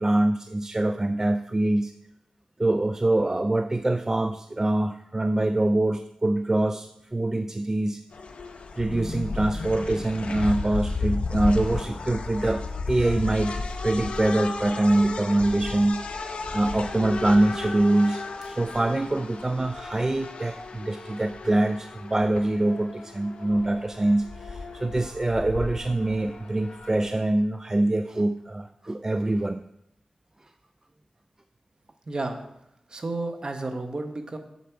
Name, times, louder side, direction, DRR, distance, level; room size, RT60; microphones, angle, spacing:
voice 1, 0.0-1.9 2.6-8.0 8.8-16.0 16.5-29.6, right 1 dB, 25° right, 9 dB, 0.4 m, -24 dB
sound 1, 8.1-27.1, left 3 dB, 75° left, 0.9 m, -34 dB
voice 2, 32.0-32.4 32.9-34.4, right 2 dB, 45° right, 6 dB, 1.2 m, -31 dB
8.1 x 7.2 x 4.7 m, 0.80 s
wide cardioid pair, 70°, 2 cm